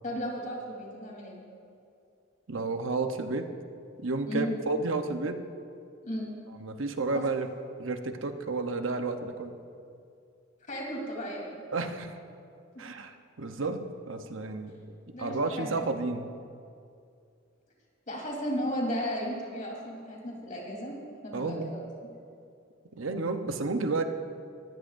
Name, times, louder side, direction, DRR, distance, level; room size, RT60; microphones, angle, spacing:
voice 1, 0.0-1.4 4.3-4.5 6.0-6.3 7.1-7.2 10.7-11.6 15.1-15.9 18.1-21.8, equal, 40° left, -2 dB, 3.6 m, -35 dB
voice 2, 2.5-3.5 4.0-5.4 6.6-7.5 7.8-9.6 11.7-12.2 12.8-16.3 21.3-21.7 22.9-24.0, right 3 dB, 75° right, 7 dB, 0.9 m, -31 dB
21.5 x 15.0 x 2.6 m, 2.4 s
head